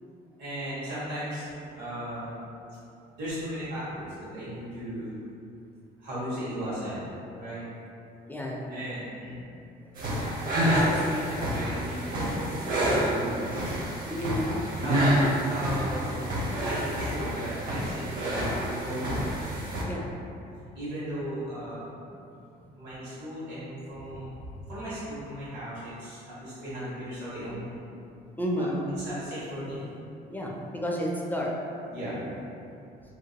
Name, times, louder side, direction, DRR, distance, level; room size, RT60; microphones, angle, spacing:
voice 1, 0.4-1.4 1.7-2.3 3.2-5.1 6.0-7.1 7.4-7.6 8.7-9.4 10.6-13.4 14.8-16.3 16.6-19.3 20.7-21.9 22.7-27.7 28.5-28.6 29.0-29.8 31.9-32.2, equal, 85° right, -12 dB, 1.5 m, -36 dB
voice 2, 8.3-8.8 9.8-10.0 14.1-14.7 19.9-20.1 28.4-28.9 30.3-31.5 32.1-32.3, equal, 10° left, -3 dB, 0.4 m, -31 dB
sound 1, 10.0-19.8, equal, 55° right, 0.8 m, -28 dB
2.9 x 2.9 x 2.8 m, 2.7 s
cardioid pair, 110°, 17 cm